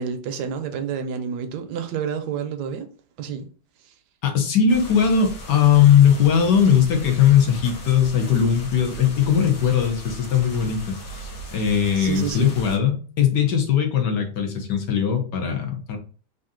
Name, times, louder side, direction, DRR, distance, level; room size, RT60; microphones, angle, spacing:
voice 1, 0.0-2.9 3.2-3.5 12.0-12.6, right 7 dB, 75° right, 1.2 m, -29 dB
voice 2, 4.2-11.0 11.5-16.0, left 8 dB, 75° left, 1.5 m, -19 dB
sound 1, 4.7-12.8, equal, 60° left, 1.3 m, -38 dB
3.8 x 2.7 x 3.6 m
omnidirectional pair, 1.9 m